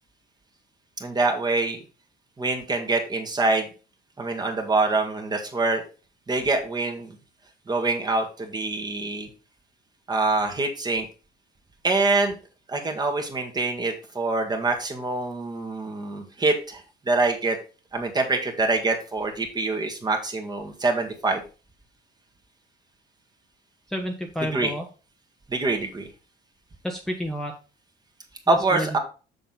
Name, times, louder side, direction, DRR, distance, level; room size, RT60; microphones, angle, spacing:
voice 1, 1.0-1.8 2.4-3.7 4.2-5.8 6.3-7.2 7.7-9.3 10.1-11.1 11.8-12.4 12.7-17.6 17.9-21.4 24.5-24.7 25.5-26.1 28.5-29.0, right 3 dB, 25° right, 3 dB, 1.8 m, -25 dB
voice 2, 23.9-24.8 26.8-27.5 28.5-28.9, equal, 5° left, 1 dB, 1.1 m, -30 dB
6.8 x 6.2 x 4.1 m, 0.34 s
cardioid pair, 110°, 17 cm